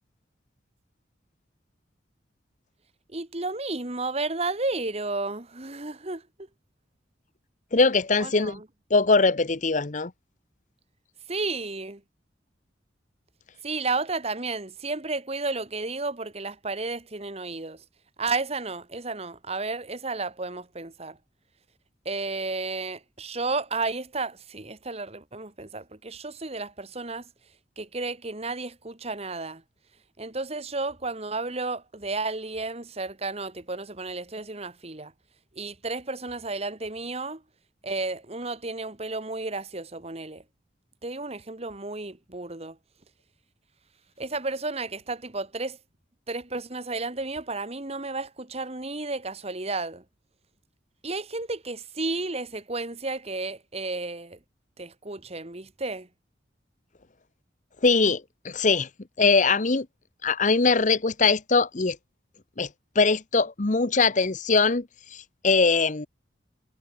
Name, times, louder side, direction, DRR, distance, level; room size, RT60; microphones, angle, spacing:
voice 1, 3.1-6.2 8.2-8.7 11.3-12.0 13.6-17.8 18.2-21.2 22.1-27.3 27.8-29.6 30.2-35.1 35.5-37.4 37.8-40.4 41.0-42.8 44.2-45.8 46.3-50.0 51.0-54.4 54.8-56.1, right 3 dB, 35° right, 1.9 m, -32 dB
voice 2, 7.7-8.6 8.9-10.1 57.8-58.9 59.2-59.9 60.2-62.0 62.6-62.7 62.9-64.9 65.1-66.1, left 4 dB, 40° left, 0.9 m, -22 dB
head